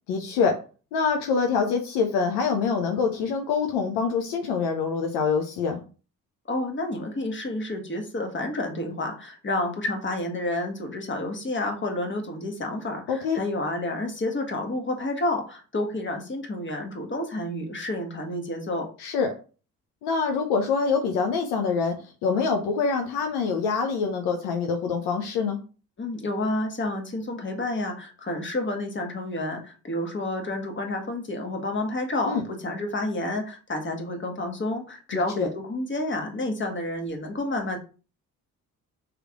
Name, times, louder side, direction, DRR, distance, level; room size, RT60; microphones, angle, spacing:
voice 1, 0.1-0.6 0.9-5.8 13.1-13.4 19.0-19.3 20.0-25.6 32.3-32.4 35.1-35.5, left 5 dB, 70° left, 4 dB, 0.7 m, -25 dB
voice 2, 6.4-18.9 26.0-37.8, left 1 dB, 25° left, 3 dB, 1.4 m, -30 dB
3.3 x 3.0 x 3.6 m, 0.36 s
hypercardioid pair, 45°, 42 cm